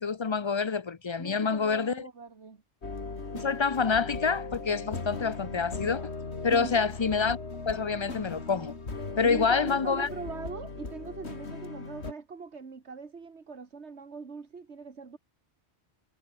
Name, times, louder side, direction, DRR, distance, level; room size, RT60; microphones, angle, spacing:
voice 1, 0.0-2.1 3.3-6.0 6.4-7.4 7.7-8.7 9.2-10.1, left 5 dB, 30° left, 0.7 m, -27 dB
voice 2, 1.2-2.6 6.5-6.8 9.2-15.2, right 5 dB, 90° right, 2.1 m, -41 dB
sound 1, 2.8-12.1, left 3 dB, 75° left, 2.9 m, -38 dB
omnidirectional pair, 1.1 m